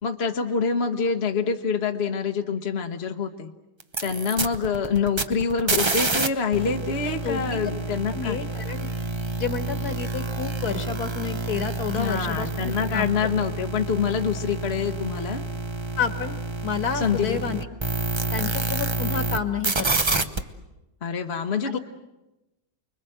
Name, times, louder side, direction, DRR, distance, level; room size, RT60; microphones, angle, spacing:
voice 1, 0.0-3.5 4.0-8.4 12.0-15.4 16.9-17.6 21.0-21.8, left 6 dB, 40° left, 4 dB, 1.2 m, -26 dB
sound 1, 3.8-6.3 6.5-19.4 19.6-20.4, right 3 dB, 25° right, 0.6 m, -28 dB
voice 2, 7.0-7.7 8.1-8.9 9.4-13.1 16.0-16.4 16.6-17.7 18.3-20.3 21.6-21.8, left 6 dB, 60° left, 8 dB, 2.1 m, -30 dB
30.0 x 22.5 x 7.9 m, 0.99 s
omnidirectional pair, 1.9 m